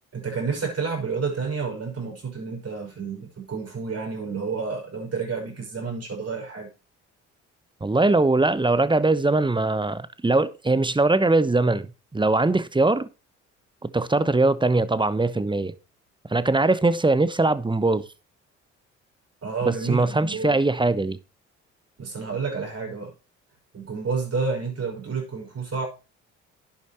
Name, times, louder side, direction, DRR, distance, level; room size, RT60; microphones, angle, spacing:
voice 1, 0.1-6.7 19.4-20.6 22.0-23.1 23.7-25.9, right 5 dB, 40° right, 6.0 m, -30 dB
voice 2, 7.8-11.9 12.1-13.1 13.8-15.7 16.3-18.1 19.7-21.2, right 2 dB, 15° right, 1.0 m, -21 dB
11.0 x 8.9 x 3.0 m
hypercardioid pair, 50°, 36 cm